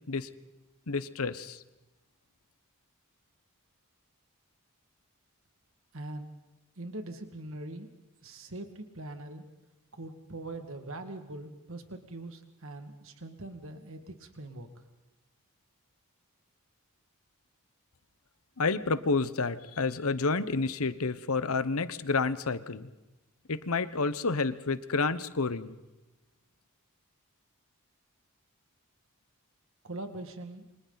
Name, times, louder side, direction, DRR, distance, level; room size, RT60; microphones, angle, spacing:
voice 1, 0.9-1.6 18.6-22.9 23.5-25.8, left 4 dB, 70° left, 13 dB, 1.0 m, -29 dB
voice 2, 5.9-6.3 6.8-7.9 8.2-9.4 9.9-14.7 29.8-30.7, right 2 dB, 60° right, 6 dB, 2.0 m, -42 dB
29.0 x 25.0 x 4.1 m, 1.0 s
head